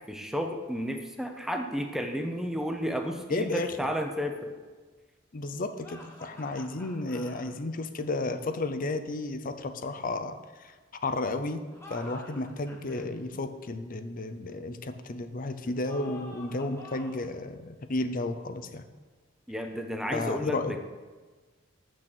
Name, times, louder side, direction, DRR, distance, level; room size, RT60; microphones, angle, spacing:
voice 1, 0.1-4.5 19.5-20.8, equal, ahead, 4 dB, 0.7 m, -32 dB
voice 2, 3.3-3.7 5.3-10.4 11.0-11.6 11.9-18.8 20.1-20.7, left 2 dB, 40° left, 10 dB, 0.6 m, -32 dB
sound 1, 5.8-7.5 11.6-13.1 15.8-17.3, left 2 dB, 15° left, 1.1 m, -48 dB
8.5 x 6.2 x 6.1 m, 1.4 s
head